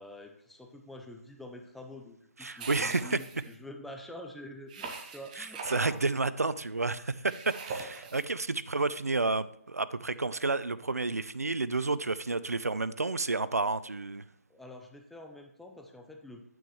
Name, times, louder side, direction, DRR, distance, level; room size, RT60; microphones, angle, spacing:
voice 1, 0.0-5.6 14.5-16.4, left 1 dB, ahead, 3 dB, 0.5 m, -47 dB
voice 2, 2.4-3.2 5.4-14.2, right 3 dB, 90° right, 15 dB, 0.5 m, -30 dB
sound 1, 2.6-3.5 4.7-6.0 7.3-8.3, right 4 dB, 30° right, 1.1 m, -41 dB
9.2 x 8.8 x 3.2 m, 0.70 s
figure-of-eight pair, 150°, 8 cm